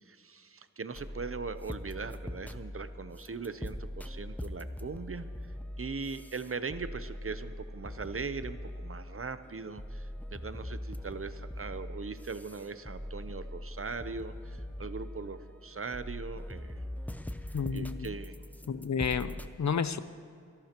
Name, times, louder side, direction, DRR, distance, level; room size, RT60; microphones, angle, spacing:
voice 1, 0.0-5.3 5.8-16.8 17.7-18.3, right 4 dB, 45° right, 12 dB, 0.7 m, -40 dB
sound 1, 0.9-19.5, left 1 dB, 5° left, 0.7 m, -42 dB
voice 2, 17.5-18.1 18.7-20.0, left 6 dB, 65° left, 13 dB, 0.6 m, -31 dB
26.5 x 12.0 x 3.0 m, 2.4 s
cardioid pair, 40°, 31 cm